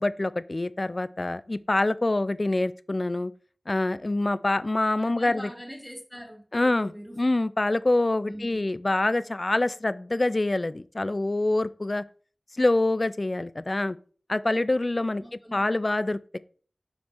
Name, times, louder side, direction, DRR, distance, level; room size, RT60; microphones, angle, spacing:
voice 1, 0.0-3.3 3.7-5.5 6.5-6.9 7.2-12.0 12.6-14.0 14.3-15.2 15.5-16.4, left 2 dB, 40° left, 0.3 m, -25 dB
voice 2, 5.0-7.2 8.2-8.7 15.2-15.7, equal, ahead, 2.6 m, -43 dB
6.1 x 5.1 x 3.4 m
wide cardioid pair, 65°, 0 cm